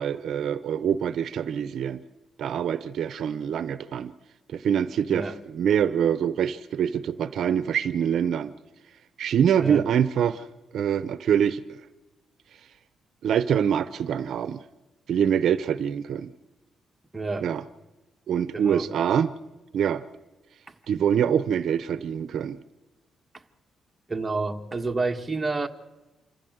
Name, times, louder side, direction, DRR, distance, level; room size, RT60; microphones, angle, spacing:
voice 1, 0.0-2.0 2.4-4.1 4.5-8.5 9.2-10.4 10.7-11.8 13.2-14.6 15.1-16.3 17.4-17.6 18.3-19.3 19.7-20.0 20.9-22.6, right 8 dB, 65° right, 13 dB, 0.8 m, -25 dB
voice 2, 17.1-17.5 18.5-18.9 20.7-20.8 24.1-25.7, right 3 dB, 20° right, 4 dB, 1.6 m, -29 dB
27.5 x 15.0 x 8.0 m, 1.1 s
cardioid pair, 115°, 0 cm